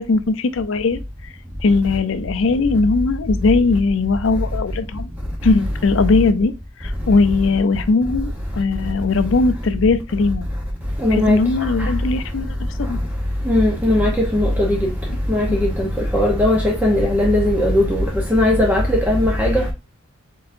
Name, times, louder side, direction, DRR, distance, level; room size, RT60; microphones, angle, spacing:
voice 1, 0.0-1.3 1.6-5.1 5.4-6.5 6.8-10.5 11.1-13.0 15.5-15.6, left 3 dB, 70° left, 0.5 m, -19 dB
voice 2, 11.0-11.4 13.5-14.9 15.3-19.7, left 1 dB, 10° right, 0.7 m, -18 dB
4.3 x 3.8 x 2.5 m
head